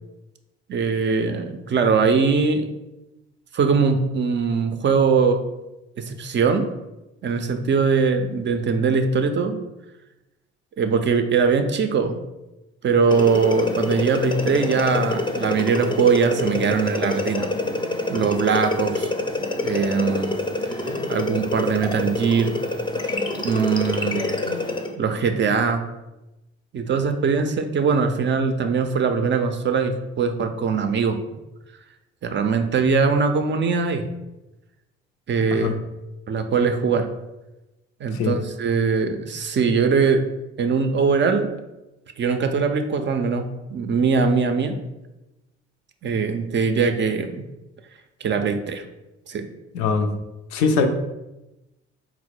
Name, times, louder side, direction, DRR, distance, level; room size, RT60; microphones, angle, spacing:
voice 1, 0.7-2.7 3.5-5.4 6.0-6.7 7.2-9.6 10.8-12.2 12.8-17.5 18.1-19.1 19.6-20.4 20.7-20.8 21.1-22.5 23.4-24.3 25.0-25.9 26.7-31.2 32.2-34.1 35.3-35.7 36.3-37.1 38.0-40.2 40.6-41.5 42.2-44.8 46.0-47.4 48.2-48.8 49.3-49.5, right 5 dB, 35° right, 7 dB, 0.5 m, -21 dB
sound 1, 13.1-24.9, left 2 dB, 15° left, 0.6 m, -26 dB
voice 2, 49.7-50.1 50.5-50.9, left 5 dB, 75° left, 6 dB, 0.5 m, -21 dB
3.9 x 2.0 x 4.4 m, 0.99 s
hypercardioid pair, 55°, 33 cm